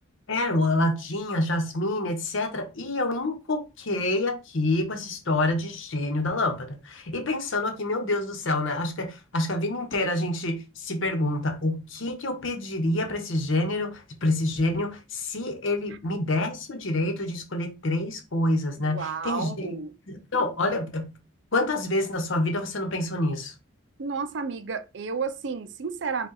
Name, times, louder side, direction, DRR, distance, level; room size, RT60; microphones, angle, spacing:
voice 1, 0.3-19.8 20.1-21.1 21.5-23.5, left 2 dB, 65° left, 0.9 m, -27 dB
voice 2, 18.8-19.9 24.0-26.3, right 5 dB, 55° right, 0.5 m, -32 dB
5.2 x 2.4 x 4.0 m
head